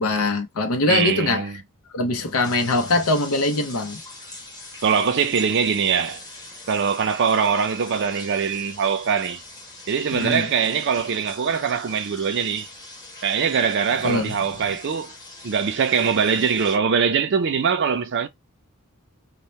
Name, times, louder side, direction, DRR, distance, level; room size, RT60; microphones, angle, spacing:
voice 1, 0.0-1.5 1.9-4.0 10.1-10.5 14.0-14.6, left 2 dB, 80° left, 0.7 m, -22 dB
voice 2, 0.9-1.5 4.8-6.2 6.7-9.4 9.9-12.7 13.2-15.1 15.4-18.3, right 6 dB, 55° right, 0.4 m, -22 dB
sound 1, 2.2-16.8, left 2 dB, 15° left, 0.9 m, -42 dB
2.8 x 2.1 x 3.1 m
head